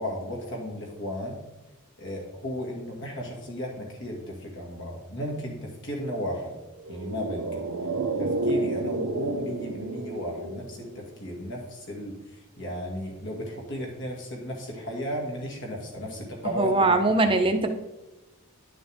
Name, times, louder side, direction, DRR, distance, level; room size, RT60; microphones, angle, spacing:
voice 1, 0.0-1.3 2.0-6.6 6.9-7.6 8.2-17.0 17.2-17.3, equal, 55° left, -1 dB, 2.0 m, -34 dB
sound 1, 6.8-11.4 11.6-11.7, right 2 dB, 75° right, 0.6 m, -30 dB
voice 2, 16.5-17.8, right 2 dB, 25° right, 6 dB, 0.6 m, -22 dB
10.5 x 6.2 x 3.5 m, 1.0 s
head